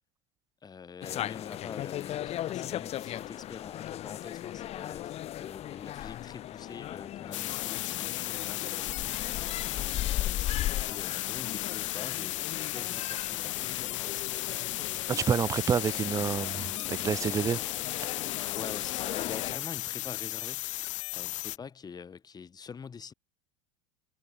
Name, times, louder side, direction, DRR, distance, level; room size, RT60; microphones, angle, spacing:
voice 1, 0.6-14.6 15.2-15.6 18.5-20.7 21.1-23.1, left 6 dB, 25° left, 5.0 m, -46 dB
sound 1, 1.0-19.6, left 12 dB, 40° left, 1.4 m, -38 dB
sound 2, 7.3-21.6, left 16 dB, 75° left, 0.7 m, -35 dB
voice 2, 15.1-17.9, right 7 dB, 20° right, 0.4 m, -29 dB
hypercardioid pair, 95°, 16 cm